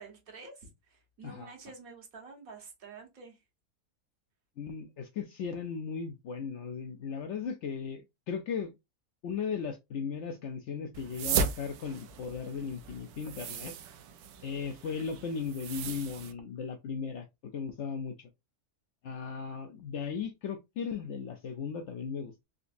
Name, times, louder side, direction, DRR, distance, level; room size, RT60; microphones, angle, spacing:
voice 1, 0.0-3.4, right 4 dB, 70° right, 1.6 m, -49 dB
voice 2, 1.2-1.5 4.6-8.7 9.2-13.7 14.4-18.3 19.0-22.4, left 6 dB, 65° left, 0.7 m, -37 dB
sound 1, 10.9-16.3, right 6 dB, 90° right, 1.1 m, -36 dB
3.8 x 2.6 x 2.4 m
omnidirectional pair, 1.6 m